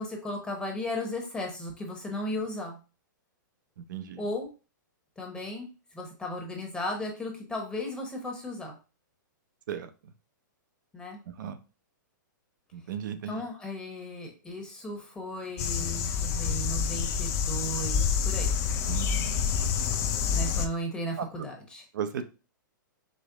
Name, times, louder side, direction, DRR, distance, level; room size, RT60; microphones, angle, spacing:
voice 1, 0.0-2.8 4.2-4.5 5.2-5.7 5.9-8.7 10.9-11.2 13.2-18.5 20.3-21.8, left 1 dB, 10° left, 0 dB, 1.0 m, -35 dB
voice 2, 3.9-4.2 9.7-9.9 11.4-11.6 12.7-13.4 18.9-19.4 21.9-22.2, right 8 dB, 65° right, 9 dB, 0.6 m, -35 dB
sound 1, 15.6-20.7, left 6 dB, 25° left, 0.4 m, -28 dB
5.1 x 2.1 x 3.8 m, 0.34 s
hypercardioid pair, 145°, 11 cm